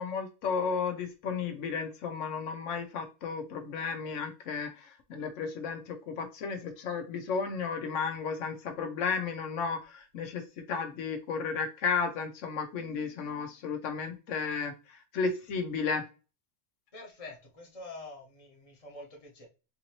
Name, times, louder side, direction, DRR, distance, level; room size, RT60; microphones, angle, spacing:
voice 1, 0.0-10.4 10.7-16.0, left 5 dB, 80° left, 5 dB, 1.0 m, -33 dB
voice 2, 16.9-19.5, left 2 dB, 30° left, 0 dB, 1.0 m, -46 dB
3.7 x 2.7 x 2.9 m, 0.32 s
omnidirectional pair, 1.3 m